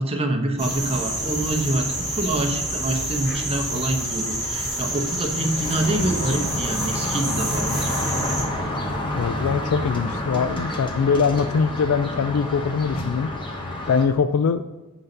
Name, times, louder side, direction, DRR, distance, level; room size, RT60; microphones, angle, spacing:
voice 1, 0.0-8.2, right 1 dB, 30° right, 3 dB, 1.0 m, -26 dB
sound 1, 0.6-8.5, right 1 dB, ahead, 1.8 m, -28 dB
sound 2, 0.7-14.0, left 1 dB, 25° left, 1.0 m, -31 dB
voice 2, 9.1-13.3 13.9-14.6, left 5 dB, 75° left, 11 dB, 0.3 m, -22 dB
7.8 x 4.0 x 6.6 m, 1.2 s
head